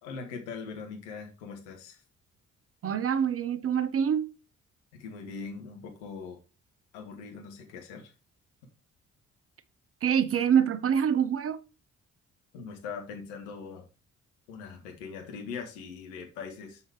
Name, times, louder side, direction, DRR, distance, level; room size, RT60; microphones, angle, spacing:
voice 1, 0.0-2.0 4.9-6.4 6.9-8.1 12.5-13.8 14.5-16.8, left 5 dB, 70° left, 1.7 m, -41 dB
voice 2, 2.8-4.3 10.0-11.6, right 8 dB, 40° right, 1.0 m, -25 dB
7.1 x 5.7 x 4.9 m
figure-of-eight pair, 40°, 36 cm